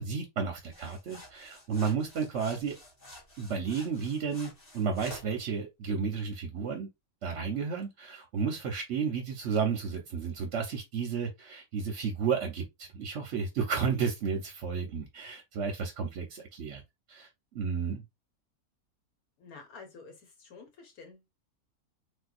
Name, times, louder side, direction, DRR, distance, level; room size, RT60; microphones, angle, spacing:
voice 1, 0.0-2.8 3.4-6.9 7.2-16.8 17.1-18.0, right 6 dB, 60° right, 0.9 m, -32 dB
sound 1, 0.7-5.4, left 1 dB, 30° left, 1.2 m, -50 dB
voice 2, 19.4-21.3, left 4 dB, 70° left, 1.6 m, -50 dB
3.4 x 2.8 x 2.4 m
omnidirectional pair, 1.6 m